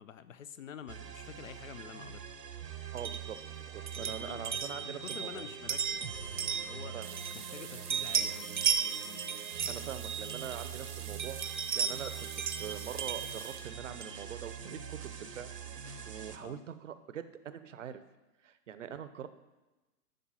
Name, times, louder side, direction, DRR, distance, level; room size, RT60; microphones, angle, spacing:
voice 1, 0.0-2.2 4.0-7.0 7.3-8.5 16.4-16.6, left 8 dB, 55° left, 13 dB, 0.7 m, -48 dB
sound 1, 0.9-16.4, right 7 dB, 80° right, 1.1 m, -45 dB
voice 2, 2.9-3.4 3.7-5.4 6.9-7.1 9.7-12.3 12.6-15.5 15.8-18.0 18.4-19.3, right 8 dB, 50° right, 12 dB, 0.8 m, -43 dB
sound 2, 3.0-7.6 7.9-10.8 11.2-14.2, right 7 dB, 35° right, 0.4 m, -36 dB
sound 3, 7.0-13.7, right 7 dB, 10° right, 0.8 m, -47 dB
12.0 x 4.4 x 7.1 m, 1.1 s
figure-of-eight pair, 120°, 48 cm